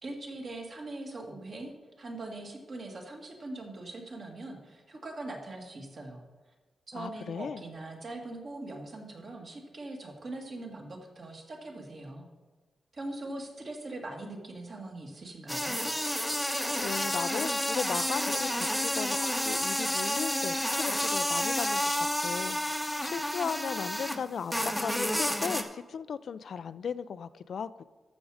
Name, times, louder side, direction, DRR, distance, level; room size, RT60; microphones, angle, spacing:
voice 1, 0.0-6.2 6.9-12.3 12.9-15.8, right 2 dB, 45° right, 1 dB, 1.9 m, -41 dB
voice 2, 6.9-7.6 16.8-27.8, left 7 dB, 65° left, 15 dB, 0.3 m, -36 dB
sound 1, 15.5-24.2 24.5-25.6, left 1 dB, ahead, 0.9 m, -30 dB
13.5 x 6.2 x 4.9 m, 1.3 s
wide cardioid pair, 135°, 0 cm